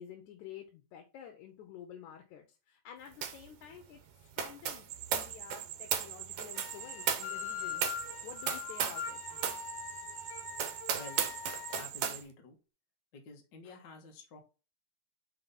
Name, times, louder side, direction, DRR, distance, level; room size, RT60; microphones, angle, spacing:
voice 1, 0.0-7.8 8.2-9.2, left 9 dB, 85° left, 2.3 m, -50 dB
sound 1, 3.2-3.5 3.7-9.1 9.4-9.7 10.1-10.2 10.6-12.2, right 8 dB, 70° right, 2.0 m, -36 dB
sound 2, 4.9-12.2, right 13 dB, 90° right, 2.0 m, -45 dB
sound 3, 6.5-11.8, left 9 dB, 70° left, 1.6 m, -42 dB
voice 2, 11.7-12.6 13.1-14.4, left 3 dB, 50° left, 1.5 m, -50 dB
5.6 x 4.0 x 5.4 m
omnidirectional pair, 3.4 m